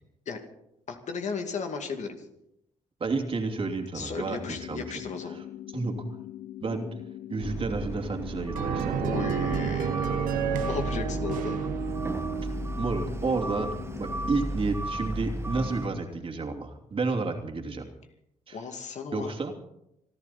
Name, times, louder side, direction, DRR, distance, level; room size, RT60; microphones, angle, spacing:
voice 1, 0.9-2.3 3.9-5.4 9.0-10.1 10.7-11.6 18.5-19.3, left 5 dB, 60° left, 4 dB, 2.5 m, -35 dB
voice 2, 3.0-4.8 5.3-5.4 5.7-5.9 6.6-6.9 7.3-9.0 12.8-17.9 18.5-18.6 19.1-19.5, right 3 dB, 40° right, 3 dB, 2.9 m, -31 dB
sound 1, 4.4-14.4, left 13 dB, 85° left, 0.7 m, -42 dB
sound 2, 7.4-15.9, right 1 dB, 20° right, 1.1 m, -35 dB
sound 3, 8.6-12.7, right 8 dB, 90° right, 1.2 m, -30 dB
27.5 x 11.5 x 4.3 m, 0.80 s
cardioid pair, 90°, 13 cm